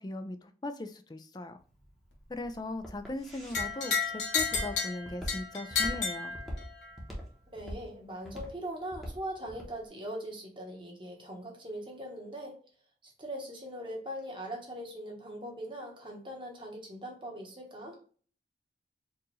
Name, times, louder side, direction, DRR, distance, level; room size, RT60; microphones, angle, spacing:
voice 1, 0.0-1.6 2.3-6.3, left 2 dB, 25° left, 0.4 m, -39 dB
Walk footsteps, 1.6-9.8, equal, ahead, 1.0 m, -42 dB
sound 1, 3.5-6.9, left 5 dB, 75° left, 1.3 m, -32 dB
voice 2, 7.5-12.6 13.0-18.0, right 1 dB, 30° right, 1.2 m, -41 dB
4.6 x 2.5 x 3.1 m
head